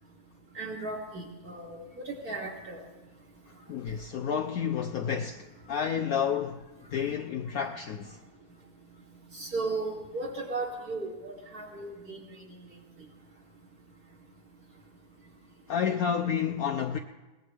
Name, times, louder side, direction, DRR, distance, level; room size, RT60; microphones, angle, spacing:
voice 1, 0.5-1.8 2.0-2.8 9.3-12.3, right 3 dB, 45° right, 3.0 m, -35 dB
voice 2, 3.7-8.2 15.7-17.0, left 7 dB, 90° left, 0.7 m, -30 dB
22.0 x 19.0 x 3.4 m
omnidirectional pair, 2.3 m